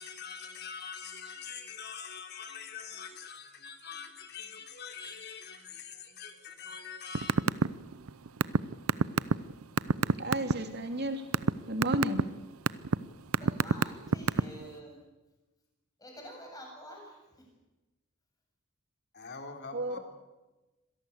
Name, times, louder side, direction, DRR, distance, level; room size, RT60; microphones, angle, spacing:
voice 1, 0.0-7.4 19.1-20.0, left 6 dB, 50° left, 5 dB, 3.2 m, -44 dB
sound 1, 7.2-7.7 7.9-10.5 11.0-11.5 11.8-12.2 12.7-13.0 13.3-14.6, right 4 dB, 90° right, 0.7 m, -24 dB
voice 2, 10.2-11.2 11.7-12.2 19.7-20.0, right 1 dB, 50° right, 5 dB, 3.2 m, -32 dB
voice 3, 13.3-15.0 16.0-17.5, equal, 15° left, 0 dB, 7.6 m, -48 dB
26.0 x 18.0 x 8.3 m, 1.1 s
head